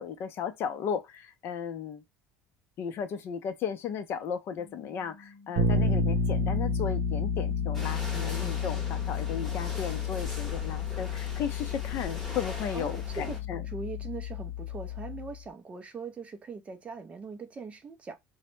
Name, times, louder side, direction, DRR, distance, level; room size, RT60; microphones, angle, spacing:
voice 1, 0.0-2.0 2.8-13.6, left 7 dB, 45° left, 0.4 m, -35 dB
sound 1, 4.6-14.1, left 3 dB, 85° left, 0.7 m, -54 dB
Bass guitar, 5.6-15.4, left 3 dB, 85° right, 0.5 m, -31 dB
sound 2, 7.7-13.4, equal, 5° left, 0.9 m, -42 dB
voice 2, 12.7-13.4 13.7-18.1, right 4 dB, 20° right, 0.4 m, -41 dB
2.0 x 2.0 x 3.0 m
supercardioid pair, 130°, 6 cm